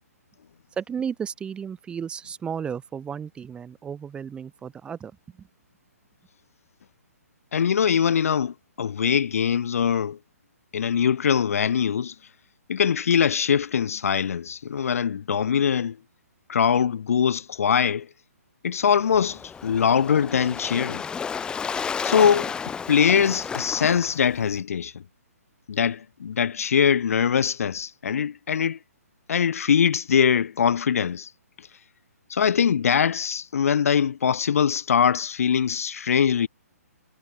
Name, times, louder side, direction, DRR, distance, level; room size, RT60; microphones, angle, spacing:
voice 1, 0.7-5.5, right 7 dB, 10° right, 1.8 m, -34 dB
voice 2, 7.5-10.2 10.7-12.1 12.7-16.0 16.5-18.1 18.6-21.0 22.0-22.5 22.9-25.0 25.7-28.8 29.3-31.3 32.3-36.5, left 7 dB, 60° left, 0.5 m, -22 dB
Waves surf, 18.9-24.6, left 6 dB, 10° left, 1.3 m, -32 dB
figure-of-eight pair, 135°, 9 cm